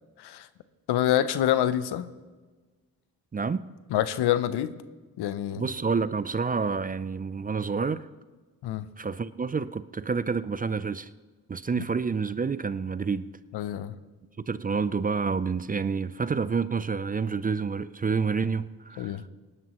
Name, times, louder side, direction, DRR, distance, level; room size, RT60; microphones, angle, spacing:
voice 1, 0.9-2.1 3.9-4.8 5.2-5.7 8.6-8.8 11.8-11.9 13.5-13.9 19.0-19.2, left 11 dB, 80° left, 0.7 m, -26 dB
voice 2, 3.3-3.7 5.6-8.1 9.0-11.1 11.5-13.3 14.5-19.2, right 5 dB, 25° right, 0.4 m, -28 dB
18.5 x 11.0 x 3.0 m
supercardioid pair, 55°, 39 cm